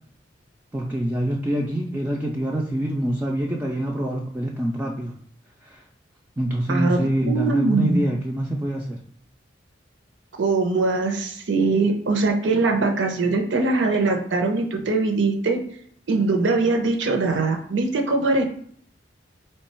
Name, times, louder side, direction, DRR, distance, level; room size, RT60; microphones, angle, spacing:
voice 1, 0.7-5.1 5.6-5.8 6.4-9.0, right 1 dB, 10° right, -2 dB, 0.3 m, -25 dB
voice 2, 6.7-8.0 10.4-15.6 16.1-18.5, right 3 dB, 80° right, 4 dB, 0.6 m, -22 dB
3.2 x 2.2 x 4.3 m, 0.62 s
head